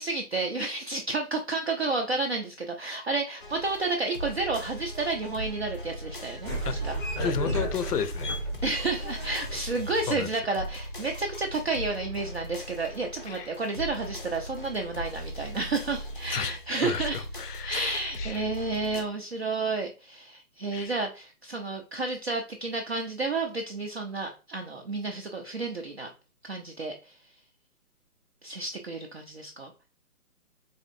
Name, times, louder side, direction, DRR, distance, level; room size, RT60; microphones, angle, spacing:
voice 1, 0.0-6.9 8.6-26.1 26.4-27.2 28.4-29.7, right 3 dB, 45° right, 0.4 m, -31 dB
sound 1, 3.4-19.0, equal, 35° left, 0.4 m, -39 dB
sound 2, 6.4-10.4, equal, 5° right, 0.7 m, -33 dB
voice 2, 7.2-8.4 10.1-10.3 13.3-13.5 16.3-18.5 20.7-20.9, left 7 dB, 80° left, 0.7 m, -33 dB
4.0 x 2.6 x 2.5 m
hypercardioid pair, 155°, 46 cm